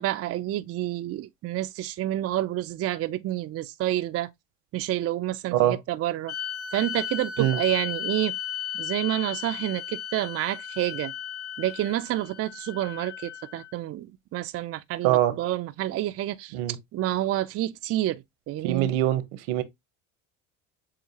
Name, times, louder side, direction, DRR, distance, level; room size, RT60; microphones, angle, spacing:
voice 1, 0.0-4.3 4.7-6.3 6.7-8.4 8.7-11.1 11.6-18.9, right 14 dB, 40° right, 0.5 m, -29 dB
sound 1, 6.3-13.8, left 9 dB, 40° left, 1.1 m, -35 dB
voice 2, 18.6-19.6, right 13 dB, 75° right, 1.0 m, -23 dB
7.3 x 2.5 x 2.8 m
supercardioid pair, 90°, 37 cm